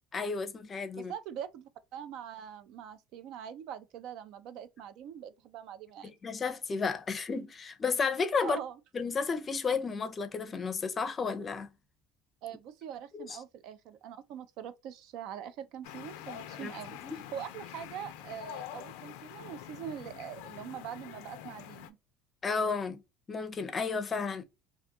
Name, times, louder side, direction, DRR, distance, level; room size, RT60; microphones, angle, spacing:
voice 1, 0.1-1.1 6.2-8.6 8.9-11.7 13.1-13.4 16.6-16.7 17.0-17.2 22.4-23.0 23.3-24.4, left 5 dB, 30° left, 0.5 m, -32 dB
voice 2, 1.0-6.2 8.4-8.8 12.4-17.0 17.3-22.0, right 9 dB, 70° right, 0.4 m, -43 dB
sound 1, 15.8-21.9, left 11 dB, 90° left, 0.4 m, -46 dB
2.6 x 2.3 x 2.6 m
cardioid pair, 115°, 0 cm